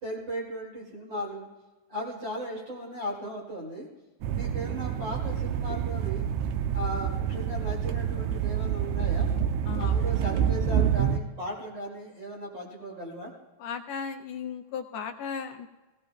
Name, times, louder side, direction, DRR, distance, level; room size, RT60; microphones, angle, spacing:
voice 1, 0.0-1.5 1.9-3.9 4.3-6.3 6.7-9.3 9.7-13.3, equal, 40° right, -4 dB, 2.9 m, -36 dB
sound 1, 4.2-11.2, right 8 dB, 90° right, 2.0 m, -27 dB
voice 2, 13.6-15.7, left 6 dB, 75° left, 4 dB, 1.7 m, -36 dB
20.0 x 16.5 x 2.3 m, 1.2 s
omnidirectional pair, 3.3 m